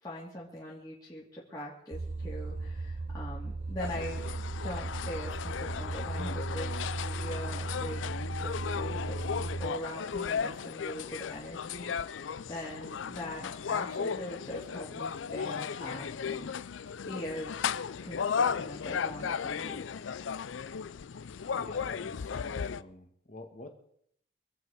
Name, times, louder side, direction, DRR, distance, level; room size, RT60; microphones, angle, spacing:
voice 1, 0.0-4.3 4.6-8.0 8.4-17.6 18.0-19.8, left 1 dB, 20° left, -6 dB, 2.4 m, -42 dB
sound 1, 1.9-9.7, right 3 dB, 45° right, 0.7 m, -36 dB
sound 2, 3.8-22.8, left 6 dB, 85° left, 0.5 m, -35 dB
voice 2, 21.5-23.7, left 2 dB, 40° left, 5 dB, 1.9 m, -47 dB
25.0 x 8.6 x 4.9 m, 0.69 s
head